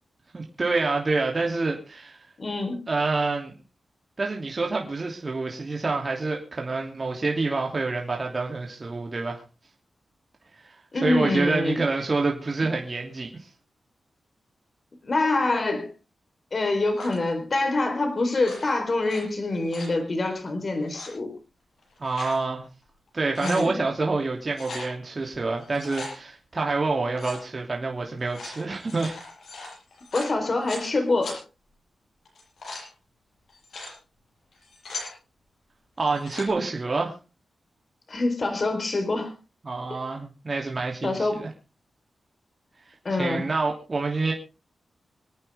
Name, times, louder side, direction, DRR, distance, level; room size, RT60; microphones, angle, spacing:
voice 1, 0.3-2.2 2.9-3.6 4.2-9.4 10.6-10.7 11.0-13.3 22.0-22.7 23.1-29.1 36.0-37.1 39.6-41.5 43.2-44.3, right 3 dB, 35° right, 1 dB, 2.9 m, -27 dB
voice 2, 2.4-2.8 10.9-11.8 15.0-15.9 16.5-21.3 23.4-23.8 30.1-31.4 38.1-39.3 39.9-40.0 41.0-41.5 43.0-43.5, left 2 dB, 45° left, 6 dB, 4.1 m, -25 dB
sound 1, 16.9-17.3 18.3-19.2 19.5-20.0 20.8-21.1 21.8-22.4 22.8-22.9 23.2-23.7 24.5-24.9 25.6-26.1 27.1-27.4 28.2-30.9 31.2-31.4 32.2-32.9 33.5-33.9 34.5-35.1 36.0-36.5, left 3 dB, 75° left, 7.8 m, -39 dB
26.0 x 9.2 x 3.6 m, 0.31 s
cardioid pair, 85°, 0 cm